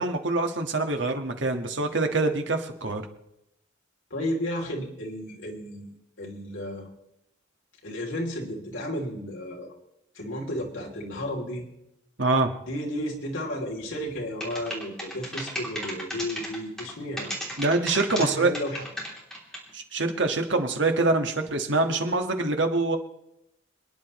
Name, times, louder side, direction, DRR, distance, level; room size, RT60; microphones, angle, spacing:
voice 1, 0.0-3.0 12.2-12.5 17.6-18.5 19.7-23.0, right 2 dB, 65° right, 4 dB, 1.6 m, -25 dB
voice 2, 4.1-5.9 6.2-6.9 7.8-9.7 10.1-11.7 12.6-17.3 18.1-18.9, equal, 80° left, -1 dB, 3.2 m, -33 dB
sound 1, 14.4-16.9 17.2-18.3 18.5-19.7, equal, 5° left, 3.1 m, -34 dB
27.5 x 10.5 x 3.2 m, 0.84 s
head